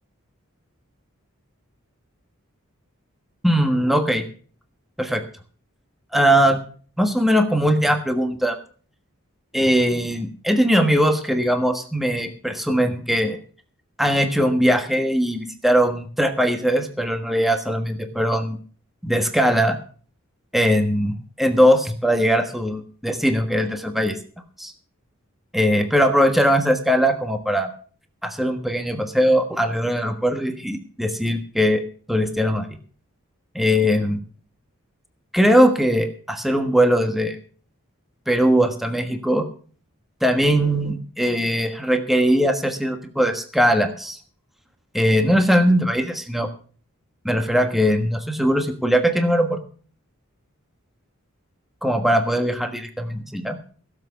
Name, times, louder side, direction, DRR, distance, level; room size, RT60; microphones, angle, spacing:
voice 1, 3.4-4.2 5.0-5.2 6.1-6.6 7.0-8.6 9.5-13.4 14.0-18.6 19.0-19.8 20.5-24.2 24.6-24.7 25.5-27.7 28.2-31.8 32.1-32.7 33.5-34.2 35.3-37.4 38.3-39.4 40.2-44.2 44.9-46.5 47.2-49.6 51.8-53.6, equal, ahead, 6 dB, 1.3 m, -20 dB
17.0 x 7.5 x 7.0 m, 0.43 s
head